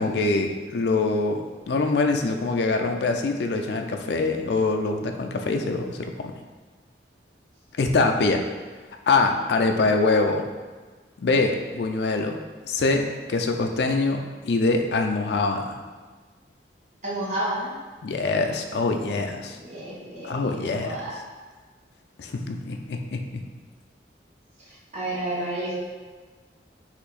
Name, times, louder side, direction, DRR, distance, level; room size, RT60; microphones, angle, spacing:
voice 1, 0.0-6.3 7.8-8.4 9.1-10.5 11.2-15.8 18.0-19.6 20.2-21.0 22.2-23.2, left 3 dB, 70° left, 4 dB, 0.4 m, -24 dB
voice 2, 17.0-17.7 19.6-20.5 20.8-21.2 24.7-25.8, right 1 dB, 40° right, -7 dB, 1.3 m, -31 dB
4.4 x 2.8 x 4.1 m, 1.4 s
head